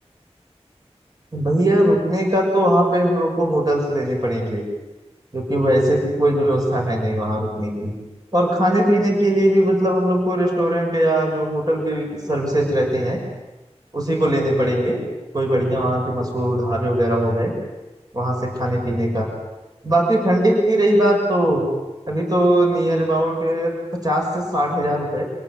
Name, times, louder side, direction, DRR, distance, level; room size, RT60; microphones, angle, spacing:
voice 1, 1.3-4.6 5.3-7.9 8.3-13.2 13.9-15.0 15.3-17.5 18.1-19.3 19.8-21.7 22.1-25.2, right 1 dB, 35° right, -1 dB, 6.5 m, -20 dB
27.5 x 18.5 x 9.5 m, 1.1 s
wide cardioid pair, 45°, 11 cm